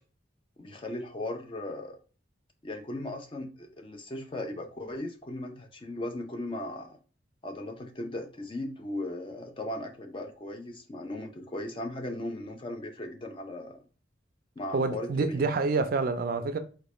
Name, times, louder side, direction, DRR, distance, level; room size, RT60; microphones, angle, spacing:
voice 1, 0.6-2.0 2.6-7.0 7.4-13.8 14.6-15.5, left 1 dB, 30° left, 0.5 m, -37 dB
voice 2, 14.7-16.6, right 3 dB, 50° right, 0.4 m, -27 dB
3.8 x 2.2 x 3.0 m
head